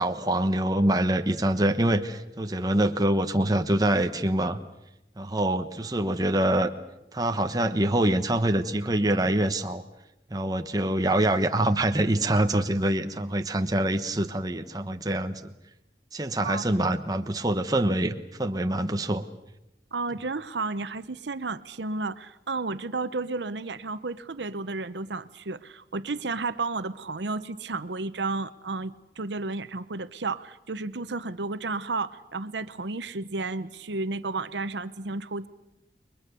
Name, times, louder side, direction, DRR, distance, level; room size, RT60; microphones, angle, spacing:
voice 1, 0.0-4.6 5.2-6.7 7.1-9.8 10.3-15.5 16.1-19.3, right 1 dB, 20° right, 6 dB, 1.1 m, -25 dB
voice 2, 19.9-35.5, right 3 dB, 85° right, 13 dB, 0.9 m, -32 dB
29.5 x 22.5 x 6.9 m, 0.89 s
head